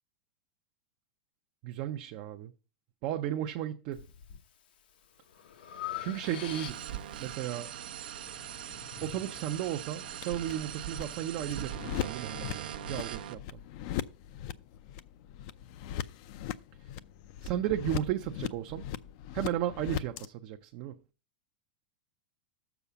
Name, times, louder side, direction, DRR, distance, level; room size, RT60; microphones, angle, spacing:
voice 1, 1.6-2.5 3.0-4.1 6.0-6.9 7.2-7.7 9.0-13.6 17.4-18.9 19.3-21.0, right 11 dB, 45° right, 0.5 m, -34 dB
Breathing, 3.9-4.4 4.9-7.1, left 11 dB, 80° left, 1.0 m, -42 dB
sound 1, 6.2-13.3, right 10 dB, 80° right, 0.8 m, -41 dB
sound 2, 8.2-20.3, left 11 dB, 50° left, 0.5 m, -40 dB
7.0 x 4.7 x 7.0 m
supercardioid pair, 150°, 5 cm